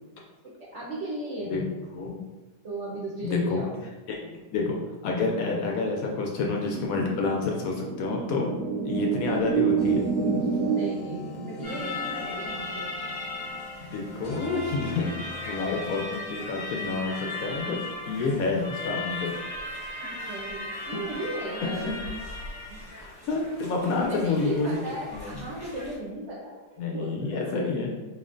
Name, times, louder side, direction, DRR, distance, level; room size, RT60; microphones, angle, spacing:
voice 1, 0.7-1.8 2.6-3.7 10.5-12.9 20.1-22.1 24.0-27.6, right 1 dB, 55° right, -6 dB, 0.9 m, -36 dB
voice 2, 3.2-3.6 4.1-4.8 5.0-8.5 8.9-10.6 13.8-17.8 18.1-19.3 21.9-22.0 23.0-24.8 25.1-25.4 26.8-27.9, left 3 dB, 70° left, 0 dB, 0.8 m, -29 dB
sound 1, 6.7-13.6, right 6 dB, 75° right, 0.5 m, -29 dB
sound 2, 9.8-16.0, left 2 dB, 90° left, 1.3 m, -44 dB
sound 3, 11.6-26.0, left 2 dB, 20° left, 0.7 m, -37 dB
4.1 x 3.1 x 2.5 m, 1.3 s
omnidirectional pair, 1.9 m